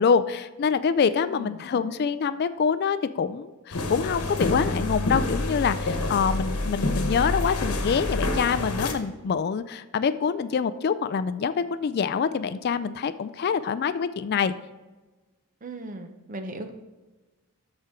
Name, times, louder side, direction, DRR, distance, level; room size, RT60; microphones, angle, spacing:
voice 1, 0.0-14.5, left 6 dB, 45° left, 13 dB, 0.3 m, -25 dB
voice 2, 1.1-1.6 15.6-16.7, right 2 dB, 35° right, 6 dB, 0.7 m, -38 dB
sound 1, 3.7-8.9, left 2 dB, 90° left, 1.1 m, -27 dB
13.5 x 4.5 x 3.6 m, 1.2 s
head